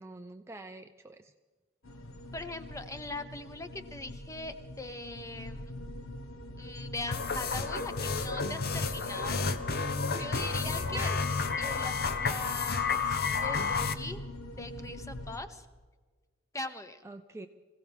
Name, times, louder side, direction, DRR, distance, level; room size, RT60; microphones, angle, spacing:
voice 1, 0.0-1.3 10.1-10.3 10.6-11.3 17.0-17.5, right 2 dB, 15° right, 6 dB, 0.4 m, -45 dB
sound 1, 1.8-15.4, left 1 dB, 75° left, 1.3 m, -43 dB
voice 2, 2.3-5.7 6.6-9.5 10.2-11.1 11.6-11.9 12.2-14.3 14.6-15.7 16.5-17.0, left 2 dB, 15° left, 9 dB, 0.8 m, -41 dB
sound 2, 7.1-13.9, left 5 dB, 50° left, 0.8 m, -31 dB
25.5 x 16.0 x 3.5 m, 1.4 s
head